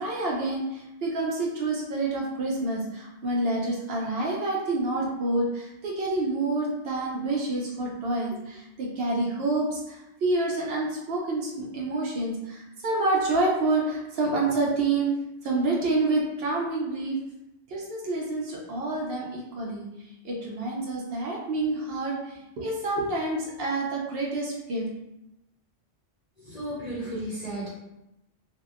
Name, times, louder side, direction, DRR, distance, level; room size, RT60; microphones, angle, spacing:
voice 1, 0.0-15.1 15.4-17.2 17.7-19.8 20.2-24.9, right 2 dB, 65° right, -2 dB, 0.7 m, -28 dB
voice 2, 26.4-27.7, right 1 dB, 45° left, -7 dB, 0.6 m, -34 dB
2.7 x 2.0 x 2.3 m, 0.90 s
omnidirectional pair, 1.2 m